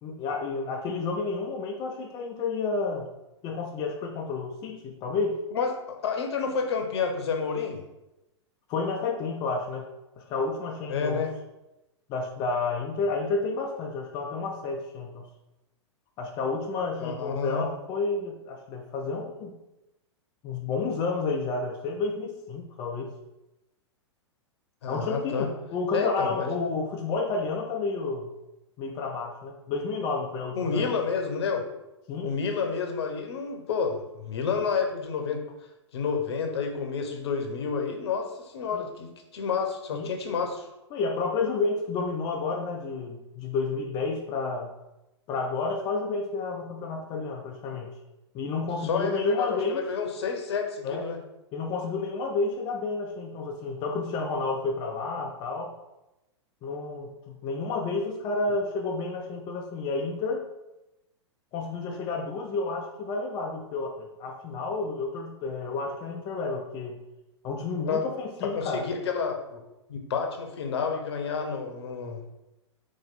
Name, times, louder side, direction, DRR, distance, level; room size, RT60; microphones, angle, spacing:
voice 1, 0.0-3.1 3.4-5.4 8.7-9.8 10.2-11.2 12.1-15.3 16.2-19.6 20.4-23.1 24.9-28.3 28.8-30.9 32.1-32.3 38.7-38.8 39.9-40.1 40.9-44.7 45.3-47.9 48.3-49.8 50.8-51.1 51.5-55.7 56.6-60.4 61.5-67.0 67.4-68.8, left 3 dB, 30° left, 2 dB, 0.5 m, -30 dB
voice 2, 5.5-7.8 10.9-11.3 17.0-17.7 24.8-25.5 25.9-26.5 30.6-31.6 32.2-35.4 35.9-40.7 48.8-51.2 67.9-68.0 68.4-69.6 69.9-72.2, left 5 dB, 60° left, 4 dB, 0.8 m, -29 dB
4.1 x 3.1 x 4.0 m, 0.95 s
figure-of-eight pair, 100°, 15 cm